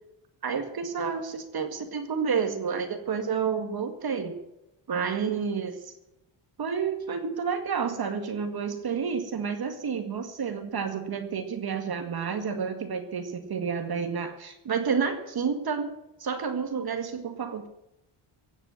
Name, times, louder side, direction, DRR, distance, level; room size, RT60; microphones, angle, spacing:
voice 1, 0.4-4.3 4.9-5.9 6.6-17.7, right 6 dB, 45° right, 6 dB, 2.0 m, -30 dB
16.5 x 8.9 x 7.8 m, 0.88 s
cardioid pair, 120°, 50 cm